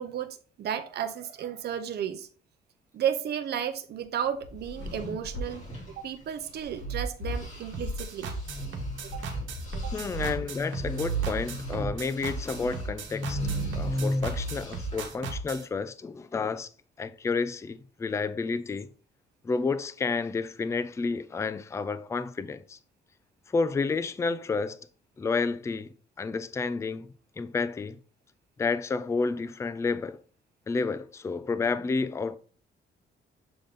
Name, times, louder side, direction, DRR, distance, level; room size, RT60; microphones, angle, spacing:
voice 1, 0.0-2.3 2.9-5.6 6.0-8.3 9.1-9.2 9.8-9.9, right 9 dB, 55° right, 0.7 m, -33 dB
sound 1, 4.4-10.5, equal, 65° left, 2.8 m, -38 dB
sound 2, 4.6-7.0 7.3-15.2, right 1 dB, 35° left, 2.9 m, -35 dB
sound 3, 7.7-15.7, right 4 dB, 90° right, 1.1 m, -36 dB
voice 2, 9.9-13.4 13.8-16.7 17.0-18.9 19.4-22.8 23.5-24.9 25.2-27.1 27.4-28.0 28.6-30.2 30.7-32.4, left 4 dB, 15° left, 0.3 m, -30 dB
6.9 x 3.9 x 3.5 m
cardioid pair, 150°, 20 cm